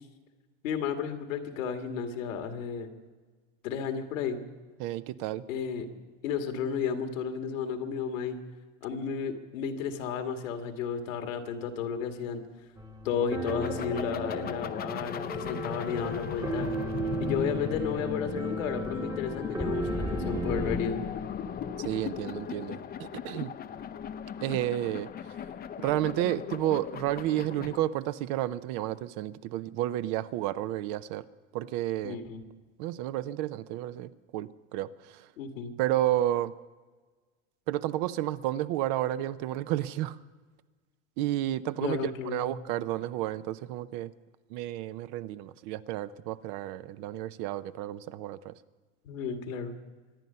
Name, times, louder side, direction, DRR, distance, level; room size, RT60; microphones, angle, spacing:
voice 1, 0.6-2.9 3.6-4.4 5.5-5.9 6.2-8.4 8.8-12.4 13.0-16.7 17.2-21.0 32.0-32.4 35.4-35.7 41.8-42.4 49.0-49.7, left 6 dB, 85° left, 5 dB, 1.9 m, -33 dB
voice 2, 4.8-5.4 21.8-23.5 24.4-25.1 25.8-31.3 31.5-32.2 32.8-35.3 35.8-36.5 37.7-40.2 41.2-44.1 44.5-48.6, right 14 dB, 55° right, 15 dB, 0.7 m, -31 dB
sound 1, 12.8-20.8, right 3 dB, 10° right, 1.1 m, -35 dB
sound 2, 13.4-27.8, left 8 dB, 25° left, 0.6 m, -37 dB
24.5 x 9.5 x 5.6 m, 1.3 s
supercardioid pair, 115°, 38 cm